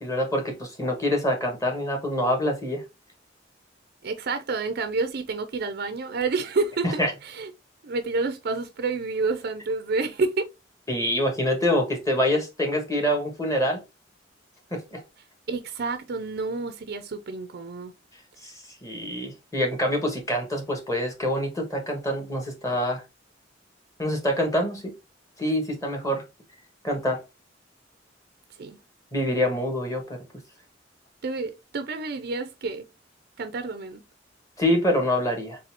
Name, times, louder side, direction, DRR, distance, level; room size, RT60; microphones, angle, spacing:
voice 1, 0.0-2.8 7.0-7.1 10.9-13.8 14.7-15.0 18.4-18.5 18.8-23.0 24.0-24.9 25.4-26.2 26.8-27.2 29.1-30.0 34.6-35.6, left 1 dB, 20° left, 1.5 m, -25 dB
voice 2, 4.0-7.5 7.8-10.5 15.5-17.9 28.6-28.8 31.2-32.9 33.4-34.0, right 3 dB, 55° right, 0.5 m, -29 dB
4.1 x 3.8 x 2.8 m
head